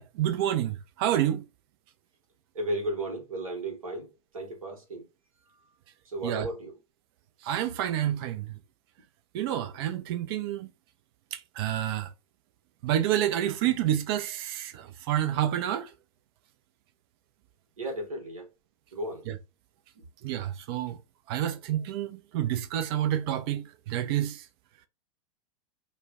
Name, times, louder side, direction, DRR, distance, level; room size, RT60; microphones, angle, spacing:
voice 1, 0.0-1.4 6.2-6.5 7.4-8.6 9.3-10.7 11.3-12.1 12.8-15.9 19.3-19.4 20.2-21.0 21.3-24.4, right 11 dB, 45° right, 0.4 m, -29 dB
voice 2, 2.5-5.0 6.0-6.8 17.8-18.5 18.9-19.3 19.9-20.0, right 1 dB, 75° right, 0.9 m, -34 dB
2.3 x 2.1 x 3.5 m
figure-of-eight pair, 95°, 18 cm